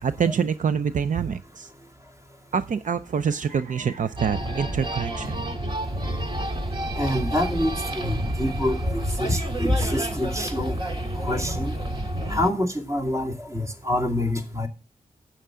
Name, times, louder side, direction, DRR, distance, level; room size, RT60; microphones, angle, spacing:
voice 1, 0.0-1.7 2.5-5.4, right 7 dB, 65° right, 12 dB, 0.5 m, -26 dB
sound 1, 4.2-12.5, right 1 dB, 35° right, 1.9 m, -29 dB
voice 2, 7.0-10.7 11.2-11.7 12.3-14.7, left 1 dB, 20° right, 2 dB, 2.4 m, -26 dB
12.5 x 8.1 x 3.7 m, 0.33 s
wide cardioid pair, 110°, 14 cm